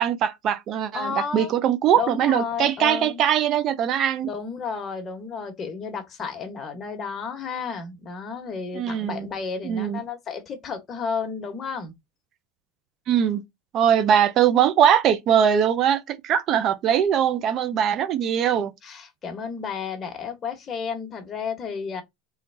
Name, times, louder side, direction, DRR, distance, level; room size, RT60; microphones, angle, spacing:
voice 1, 0.0-4.3 8.7-9.3 9.6-10.0 13.1-13.4 13.7-18.7, right 9 dB, 45° right, 0.6 m, -21 dB
voice 2, 0.9-1.5 2.0-3.2 4.2-11.9 18.8-22.0, left 6 dB, 30° left, 1.2 m, -32 dB
3.8 x 3.2 x 2.7 m
supercardioid pair, 110°, 0 cm